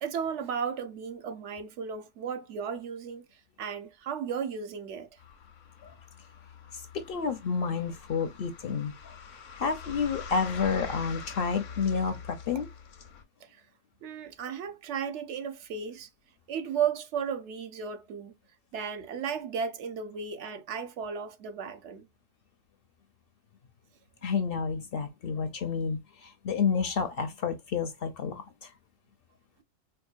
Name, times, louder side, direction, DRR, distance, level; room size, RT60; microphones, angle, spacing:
voice 1, 0.0-5.1 13.4-13.6 14.0-16.1 16.5-18.3 18.7-22.0, right 7 dB, 70° right, 0.9 m, -34 dB
sound 1, 5.2-13.2, left 6 dB, 80° left, 1.1 m, -44 dB
voice 2, 6.9-8.9 9.6-12.7 24.2-28.4, left 5 dB, 60° left, 0.6 m, -30 dB
4.5 x 2.4 x 2.3 m
omnidirectional pair, 1.3 m